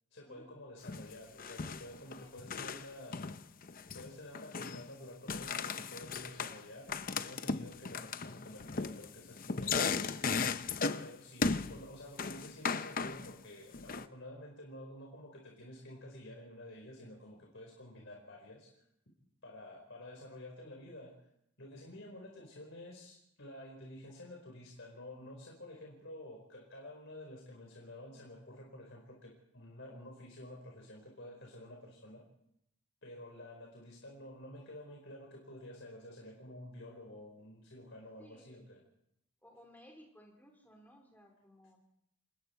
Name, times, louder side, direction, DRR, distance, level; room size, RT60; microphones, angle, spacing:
voice 1, 0.1-3.3 3.9-10.3 11.0-18.8 19.4-21.2 21.6-32.2 33.0-38.8, left 1 dB, 60° left, -1 dB, 5.0 m, -50 dB
sound 1, 0.9-1.1 1.4-2.9 3.1-4.1 4.3-4.9 5.3-6.6 6.9-11.1 11.4-11.8 12.2-13.3 13.7-14.1, left 4 dB, 40° left, 0.7 m, -36 dB
voice 2, 38.2-38.6 39.4-41.8, equal, 10° left, 1 dB, 4.4 m, -59 dB
28.0 x 21.0 x 4.6 m, 0.76 s
head